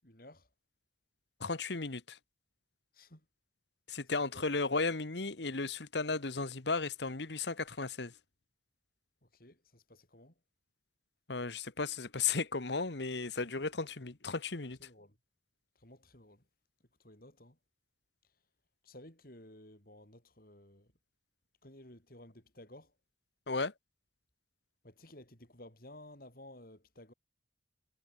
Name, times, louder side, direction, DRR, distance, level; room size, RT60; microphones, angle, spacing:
voice 1, 0.0-0.5 2.9-3.3 4.3-4.5 9.2-10.3 14.8-15.2 15.7-16.4 17.0-17.6 18.8-20.9 21.6-22.9 24.8-27.1, left 1 dB, 50° left, 6.5 m, -55 dB
voice 2, 1.4-2.2 3.9-8.1 11.3-14.8 23.5-23.7, left 4 dB, 70° left, 1.4 m, -35 dB
head